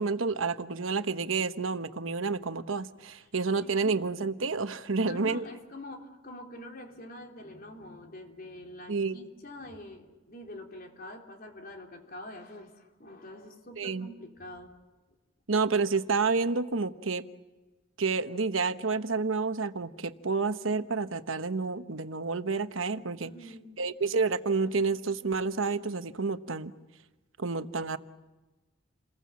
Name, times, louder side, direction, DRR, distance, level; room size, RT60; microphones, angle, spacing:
voice 1, 0.0-5.4 8.9-9.2 13.8-14.1 15.5-17.2 18.0-23.3 23.8-26.7 27.4-28.0, right 4 dB, 80° right, 10 dB, 1.1 m, -29 dB
voice 2, 3.6-4.0 5.0-14.7 23.2-23.7, left 1 dB, 45° left, 2 dB, 3.4 m, -45 dB
29.5 x 21.5 x 7.5 m, 1.2 s
head